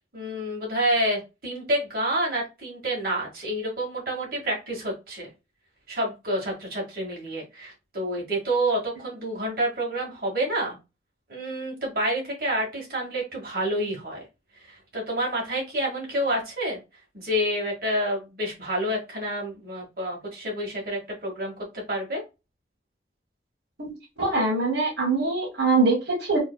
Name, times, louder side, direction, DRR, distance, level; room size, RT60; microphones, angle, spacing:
voice 1, 0.1-5.3 5.9-10.8 11.3-14.2 14.6-16.8 17.1-21.5 21.9-22.2, right 1 dB, 55° right, -3 dB, 1.9 m, -28 dB
voice 2, 24.2-26.4, right 3 dB, 85° right, -1 dB, 1.5 m, -23 dB
4.6 x 3.4 x 2.2 m, 0.26 s
head